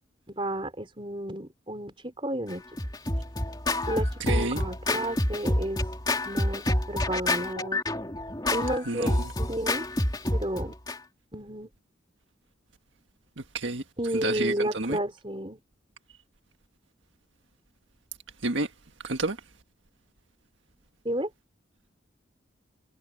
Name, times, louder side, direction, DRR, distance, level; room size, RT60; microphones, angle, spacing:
voice 1, 0.3-2.6 3.9-5.8 6.3-7.8 8.5-9.9 10.3-10.7 11.3-11.7 14.0-15.6 21.0-21.3, right 1 dB, 25° right, 4.2 m, -32 dB
Scratching (performance technique), 2.5-11.0, left 1 dB, 20° left, 2.9 m, -28 dB
voice 2, 4.2-4.6 8.9-9.3 13.4-13.8 14.1-15.0 18.4-18.7 19.0-19.4, right 2 dB, 75° right, 1.6 m, -29 dB
head